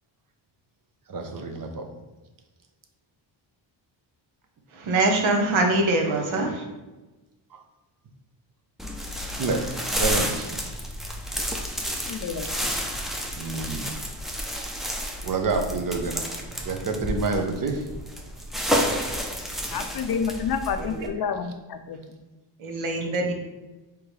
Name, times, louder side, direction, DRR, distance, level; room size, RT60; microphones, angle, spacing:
voice 1, 1.1-1.9 7.5-7.6 9.4-9.6 10.0-10.7 13.4-13.9 15.2-16.2 16.6-17.8, right 3 dB, 45° right, 5 dB, 0.8 m, -28 dB
voice 2, 4.7-6.6 20.8-21.1 22.6-23.3, right 2 dB, 80° right, 2 dB, 1.0 m, -24 dB
sound 1, 8.8-21.1, equal, ahead, 0.5 m, -30 dB
voice 3, 12.1-12.7 19.7-22.0, left 6 dB, 50° left, 8 dB, 0.5 m, -29 dB
4.7 x 3.5 x 3.2 m, 1.1 s
cardioid pair, 95°, 47 cm